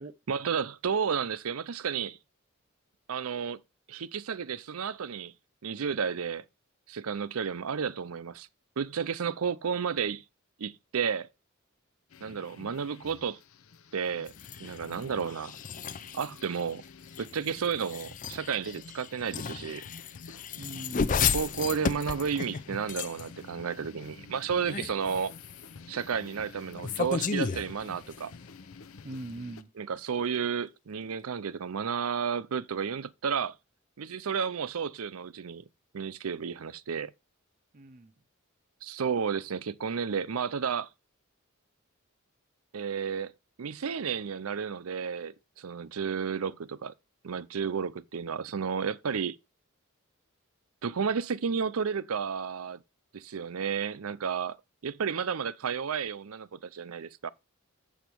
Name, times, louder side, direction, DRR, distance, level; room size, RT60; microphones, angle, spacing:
voice 1, 0.3-2.2 3.1-3.6 3.9-5.3 5.6-6.4 6.9-8.5 8.8-10.2 10.6-11.3 12.2-13.4 13.9-14.3 14.6-15.6 16.1-16.8 17.2-19.8 21.3-25.3 25.9-28.3 29.8-33.6 34.0-35.6 35.9-37.1 38.8-40.9 42.7-43.3 43.6-46.9 47.2-49.4 50.8-52.8 53.1-54.6 54.8-57.3, right 6 dB, 90° right, 0.6 m, -32 dB
sound 1, 12.1-29.6, left 4 dB, 75° left, 0.7 m, -50 dB
sound 2, 14.3-23.4 24.5-25.7 26.7-28.4, left 6 dB, 40° left, 0.5 m, -34 dB
voice 2, 20.6-21.3 29.0-29.7 37.7-38.1, right 2 dB, 40° right, 0.6 m, -41 dB
7.1 x 7.1 x 4.5 m
head